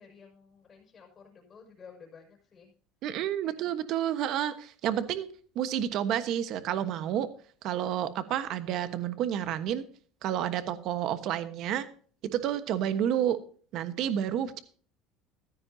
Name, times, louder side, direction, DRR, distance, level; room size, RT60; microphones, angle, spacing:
voice 1, 0.0-2.7 3.4-3.8, left 6 dB, 25° left, 1 dB, 6.3 m, -53 dB
voice 2, 3.0-5.3 5.5-7.3 7.6-9.9 10.2-11.9 12.3-13.4 13.7-14.6, right 10 dB, 50° right, 11 dB, 1.3 m, -30 dB
15.0 x 13.0 x 2.8 m, 0.44 s
cardioid pair, 150°, 0 cm